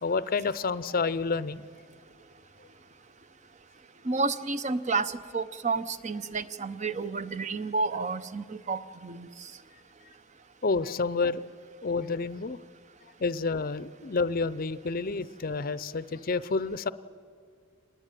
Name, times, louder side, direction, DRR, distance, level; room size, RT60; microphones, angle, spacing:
voice 1, 0.0-1.6 10.6-11.4 11.8-12.6 13.2-16.9, left 4 dB, 45° left, 16 dB, 0.6 m, -29 dB
voice 2, 4.0-9.3, right 4 dB, 35° right, 13 dB, 0.8 m, -30 dB
25.0 x 20.0 x 9.1 m, 2.2 s
head